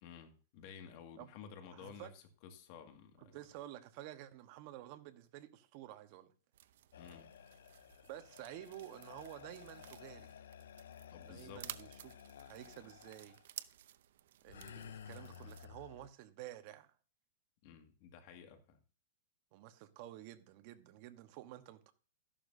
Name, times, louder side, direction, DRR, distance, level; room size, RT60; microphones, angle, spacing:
voice 1, 0.0-3.4 7.0-7.3 11.1-11.7 17.6-18.8, left 7 dB, 45° left, 2.1 m, -53 dB
voice 2, 1.7-2.1 3.2-6.3 8.1-10.3 11.2-12.1 12.4-13.4 14.4-16.9 19.5-21.9, right 13 dB, 40° right, 1.2 m, -51 dB
sound 1, 6.5-15.7, right 12 dB, 65° right, 0.6 m, -54 dB
sound 2, 6.9-13.4 14.5-16.1, left 9 dB, 85° left, 0.5 m, -54 dB
13.5 x 11.5 x 2.7 m
supercardioid pair, 160°, 0 cm